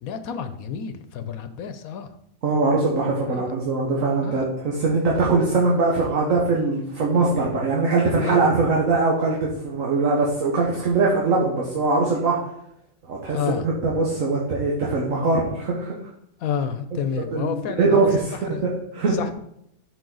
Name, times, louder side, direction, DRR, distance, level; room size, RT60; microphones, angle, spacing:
voice 1, 0.0-2.1 3.3-3.5 4.2-4.4 8.2-8.5 13.3-13.7 16.4-18.6 19.1-19.3, left 7 dB, 80° left, 10 dB, 1.1 m, -30 dB
voice 2, 2.4-12.4 13.1-13.4 13.8-16.0 16.9-17.0 17.3-18.2 18.6-19.2, right 3 dB, 65° right, -3 dB, 1.7 m, -21 dB
12.5 x 5.1 x 4.0 m, 0.76 s
omnidirectional pair, 1.5 m